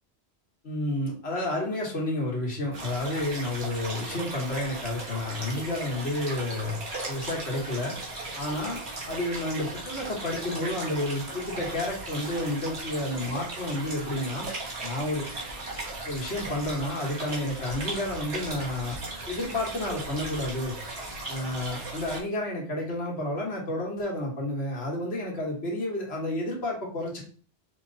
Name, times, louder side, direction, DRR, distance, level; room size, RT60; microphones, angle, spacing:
voice 1, 0.6-6.8 7.1-7.9 8.3-8.8 9.1-14.5 14.8-15.2 16.0-19.0 19.3-20.8 21.3-27.2, left 1 dB, 75° left, -2 dB, 1.8 m, -30 dB
sound 1, 2.7-22.2, right 2 dB, 75° right, 1.8 m, -37 dB
4.4 x 3.1 x 3.9 m, 0.43 s
omnidirectional pair, 1.1 m